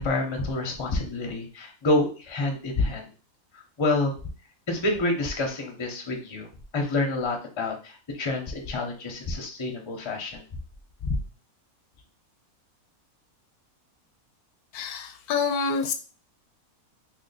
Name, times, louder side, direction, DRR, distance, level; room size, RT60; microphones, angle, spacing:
voice 1, 0.0-3.1 3.8-4.1 4.7-6.5 6.7-10.4 11.0-11.2, left 2 dB, 30° left, 1 dB, 0.6 m, -28 dB
voice 2, 14.7-15.9, left 5 dB, 80° left, 7 dB, 1.1 m, -27 dB
2.9 x 2.7 x 4.0 m, 0.36 s
omnidirectional pair, 1.6 m